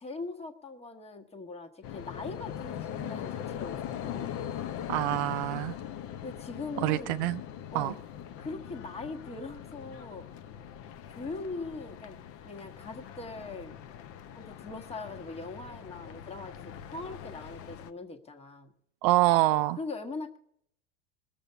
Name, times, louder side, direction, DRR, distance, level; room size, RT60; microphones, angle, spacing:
voice 1, 0.0-4.3 6.2-7.2 7.7-8.0 8.4-10.3 11.1-12.2 12.4-13.7 14.3-18.7 19.8-20.4, left 3 dB, 15° left, 1.4 m, -41 dB
sound 1, 1.8-17.9, left 10 dB, 40° left, 0.8 m, -41 dB
voice 2, 4.9-5.8 6.8-7.4 7.7-7.9 19.0-19.8, right 16 dB, 50° right, 0.5 m, -25 dB
20.0 x 7.1 x 6.6 m
hypercardioid pair, 105°, 35 cm